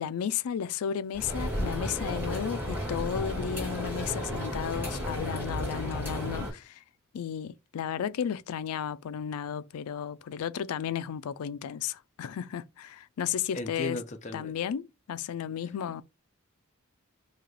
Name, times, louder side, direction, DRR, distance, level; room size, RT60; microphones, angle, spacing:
voice 1, 0.0-6.8 7.1-14.0 14.3-16.0, left 8 dB, 80° left, 0.3 m, -33 dB
sound 1, 1.1-6.5, equal, 10° right, 1.8 m, -33 dB
voice 2, 13.5-14.5, left 1 dB, 30° left, 0.5 m, -36 dB
3.1 x 2.8 x 3.8 m
head